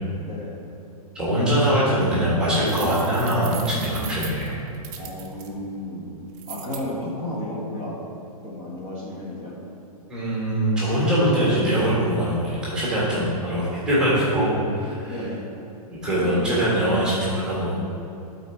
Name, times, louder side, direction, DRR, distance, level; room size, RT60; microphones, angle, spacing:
voice 1, 1.1-4.5 10.1-14.5 14.7-15.2 16.0-17.7, right 1 dB, 5° right, -8 dB, 1.4 m, -22 dB
sound 1, 2.6-5.5 6.3-6.8, right 8 dB, 30° right, 0.7 m, -38 dB
voice 2, 5.0-6.1 6.5-8.0 8.4-9.6 15.1-15.4 16.2-16.6, left 1 dB, 25° left, -5 dB, 1.4 m, -33 dB
12.0 x 4.2 x 4.5 m, 2.7 s
hypercardioid pair, 175°, 19 cm